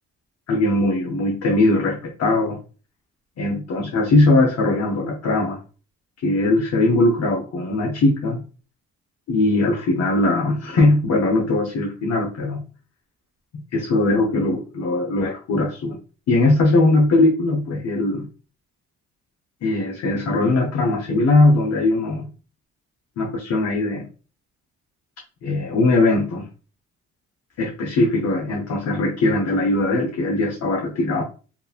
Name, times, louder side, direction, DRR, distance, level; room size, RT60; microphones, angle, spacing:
voice 1, 0.5-2.6 3.4-5.6 6.2-8.4 9.3-12.6 13.5-16.0 16.3-18.3 19.6-22.3 23.2-24.0 25.4-26.5 27.6-31.2, left 2 dB, 60° left, -1 dB, 0.7 m, -20 dB
2.8 x 2.4 x 2.3 m, 0.36 s
cardioid pair, 90°, 30 cm